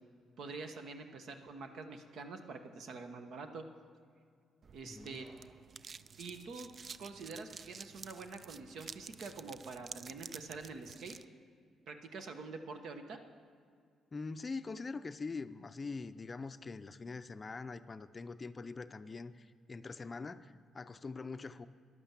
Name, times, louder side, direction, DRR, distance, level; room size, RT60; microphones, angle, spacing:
voice 1, 0.4-3.6 4.7-5.3 6.2-6.7 7.0-11.1 11.9-13.2, right 4 dB, 70° right, 6 dB, 1.1 m, -46 dB
sound 1, 4.6-11.2, right 5 dB, 45° right, 0.3 m, -51 dB
voice 2, 4.9-5.2 14.1-21.7, left 4 dB, 30° left, 11 dB, 0.5 m, -43 dB
11.0 x 11.0 x 7.4 m, 2.2 s
cardioid pair, 90°, 0 cm